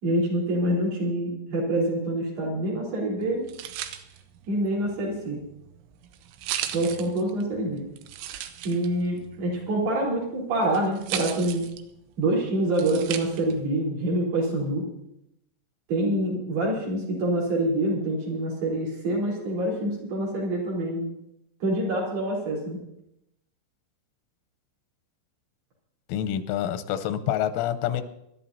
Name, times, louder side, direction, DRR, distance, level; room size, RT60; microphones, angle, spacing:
voice 1, 0.0-3.5 4.5-5.4 6.7-7.8 8.6-11.6 12.2-14.9 15.9-21.1 21.6-22.8, right 1 dB, 55° right, -5 dB, 5.7 m, -26 dB
sound 1, 3.2-13.7, right 11 dB, 80° right, 3.1 m, -38 dB
voice 2, 26.1-28.0, left 10 dB, 90° left, 8 dB, 3.3 m, -27 dB
25.0 x 12.5 x 2.8 m, 0.81 s
omnidirectional pair, 5.5 m